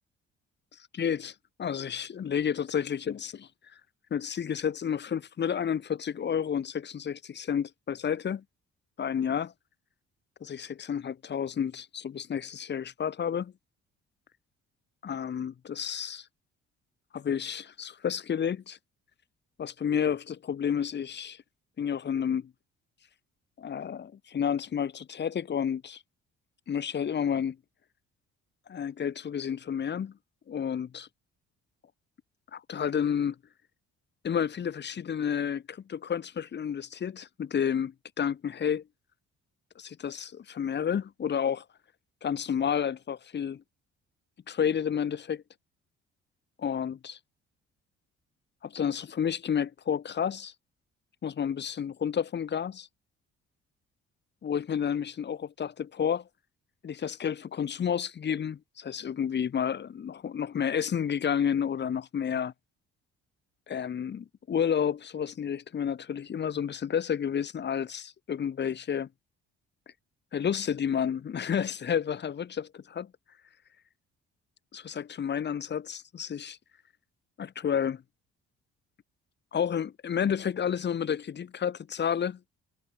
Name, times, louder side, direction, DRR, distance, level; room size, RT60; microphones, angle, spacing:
voice 1, 0.9-3.5 4.1-8.4 9.0-9.5 10.4-13.5 15.0-16.3 17.1-18.8 19.6-21.4 21.8-22.5 23.6-26.0 26.7-27.6 28.7-30.1 30.5-31.1 32.5-33.4 34.2-38.8 39.8-41.6 42.2-43.6 44.5-45.4 46.6-47.2 48.6-50.5 51.2-52.9 54.4-56.2 56.8-62.5 63.7-69.1 70.3-73.1 74.7-76.6 77.4-78.0 79.5-82.4, left 8 dB, 35° left, 0.7 m, -30 dB
hypercardioid pair, 50°, 33 cm